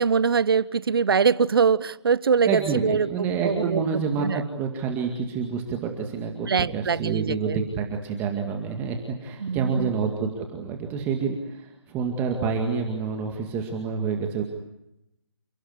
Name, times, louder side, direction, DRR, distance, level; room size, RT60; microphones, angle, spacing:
voice 1, 0.0-4.4 6.5-7.6 9.4-9.9, right 6 dB, 55° right, 20 dB, 0.9 m, -23 dB
voice 2, 2.5-14.4, right 5 dB, 15° right, 3 dB, 2.1 m, -28 dB
29.5 x 17.0 x 9.6 m, 0.87 s
figure-of-eight pair, 155°, 15 cm